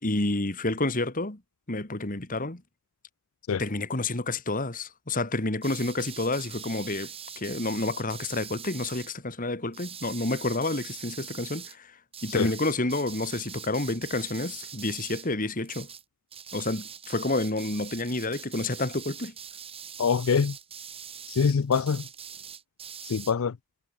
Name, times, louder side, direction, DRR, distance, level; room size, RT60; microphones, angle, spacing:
voice 1, 0.0-1.4 1.7-2.6 3.6-11.9 12.2-15.9 16.5-19.3, left 2 dB, 40° left, 2.3 m, -29 dB
sound 1, 5.6-9.1 9.7-11.7 12.1-15.3 15.6-16.0 16.3-23.3, right 8 dB, 25° right, 6.5 m, -43 dB
voice 2, 20.0-20.6 21.3-22.0 23.0-23.6, left 6 dB, 70° left, 0.5 m, -24 dB
head